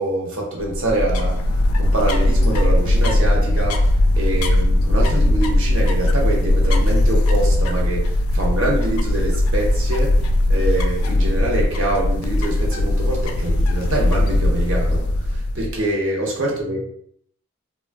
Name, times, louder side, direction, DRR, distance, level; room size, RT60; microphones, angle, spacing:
voice 1, 0.0-1.4 1.8-3.9 4.1-10.2 10.5-16.8, right 1 dB, 65° right, -2 dB, 0.8 m, -25 dB
sound 1, 0.6-15.8, left 1 dB, 85° left, 0.3 m, -19 dB
3.2 x 2.3 x 2.2 m, 0.67 s
head